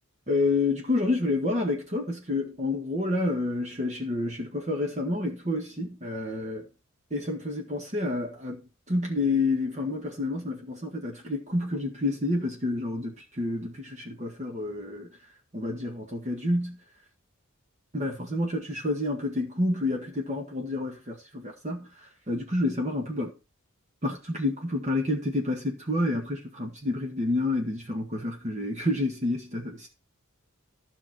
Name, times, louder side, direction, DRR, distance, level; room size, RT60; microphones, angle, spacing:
voice 1, 0.3-6.7 7.1-15.2 15.5-16.8 17.9-23.3 24.0-29.9, left 2 dB, 35° right, 1.8 m, -29 dB
12.5 x 6.1 x 4.6 m
head